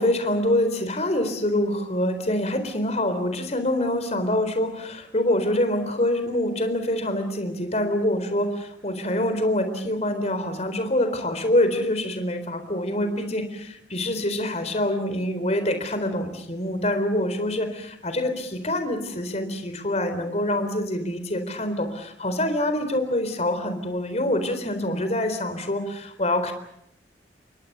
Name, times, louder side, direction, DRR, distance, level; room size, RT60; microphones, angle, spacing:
voice 1, 0.0-26.5, left 1 dB, 40° left, 8 dB, 4.0 m, -25 dB
28.5 x 23.5 x 6.8 m, 0.77 s
head